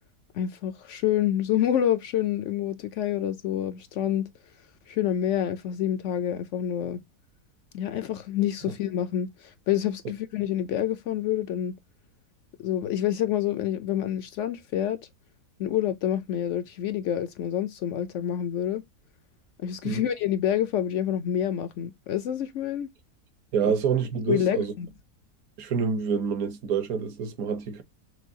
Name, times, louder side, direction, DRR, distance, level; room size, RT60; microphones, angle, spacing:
voice 1, 0.3-4.2 4.9-7.0 7.7-11.7 12.6-15.0 15.6-18.8 19.6-22.9 23.6-23.7 24.3-24.9, left 10 dB, 70° left, 0.7 m, -27 dB
voice 2, 23.5-24.7 25.6-27.8, right 6 dB, 65° right, 1.3 m, -27 dB
6.2 x 2.3 x 2.7 m
omnidirectional pair, 1.7 m